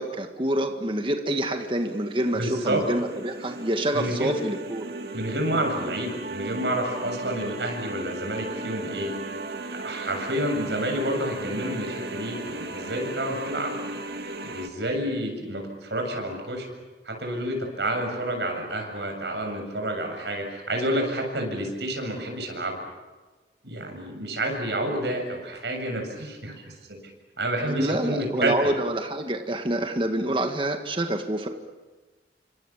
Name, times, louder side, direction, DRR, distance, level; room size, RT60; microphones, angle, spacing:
voice 1, 0.0-4.9 27.7-31.5, right 1 dB, 30° right, 5 dB, 1.8 m, -27 dB
sound 1, 1.3-14.7, right 2 dB, 60° right, 2.2 m, -37 dB
voice 2, 2.3-2.8 3.9-4.3 5.1-9.2 9.7-13.7 14.4-16.7 17.0-22.8 23.6-27.0 27.4-28.5, right 1 dB, 80° right, 3 dB, 7.6 m, -29 dB
28.5 x 26.0 x 7.4 m, 1.3 s
head